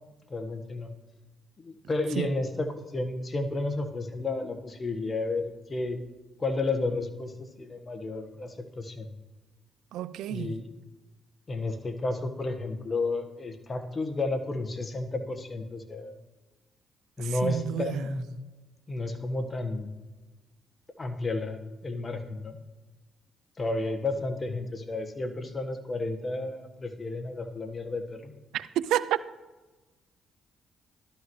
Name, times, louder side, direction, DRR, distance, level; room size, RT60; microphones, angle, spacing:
voice 1, 0.3-0.9 1.6-6.0 6.4-9.1 10.3-10.7 11.5-16.2 17.2-18.3 18.9-19.9 21.0-22.6 23.6-28.3, left 2 dB, 35° left, 1.4 m, -32 dB
voice 2, 9.9-10.6 17.2-17.9 28.5-29.2, right 12 dB, 80° right, 0.3 m, -30 dB
12.5 x 12.5 x 3.1 m
supercardioid pair, 65°, 0 cm